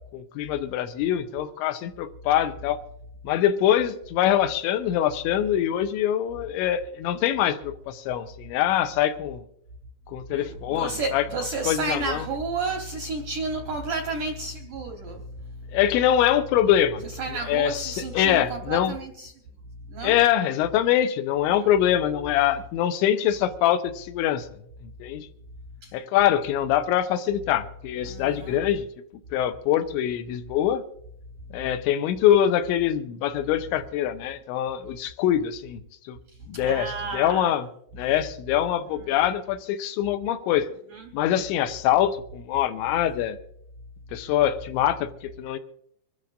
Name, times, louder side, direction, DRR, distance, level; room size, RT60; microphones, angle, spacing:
voice 1, 0.1-2.8 3.2-9.4 10.1-11.2 11.7-12.3 15.7-17.0 17.5-19.0 20.0-24.5 25.0-25.3 25.9-28.9 29.3-30.8 31.5-35.8 36.1-36.2 36.5-37.7 37.9-40.7 41.1-43.4 44.1-45.6, left 11 dB, 90° left, 3.1 m, -24 dB
voice 2, 10.3-15.3 17.0-19.3 19.9-20.2 21.5-21.7 25.8-25.9 28.0-28.6 36.5-37.4 39.0-39.2 40.9-41.1, right 3 dB, 75° right, 1.8 m, -31 dB
25.5 x 13.0 x 2.5 m
omnidirectional pair, 5.3 m